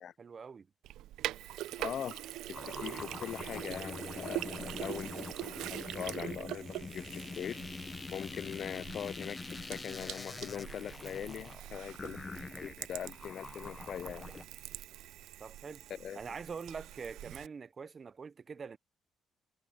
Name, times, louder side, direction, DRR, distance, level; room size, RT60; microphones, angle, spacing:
voice 1, 0.2-0.7 15.4-15.9 16.1-18.8, right 5 dB, 40° right, 0.7 m, -44 dB
Sink (filling or washing), 0.8-17.5, right 14 dB, 90° right, 0.5 m, -44 dB
voice 2, 1.8-7.7 8.1-14.3 15.9-16.2, left 9 dB, 65° left, 0.4 m, -42 dB
sound 1, 2.5-14.4, left 4 dB, 30° left, 0.8 m, -45 dB
cardioid pair, 90°, 0 cm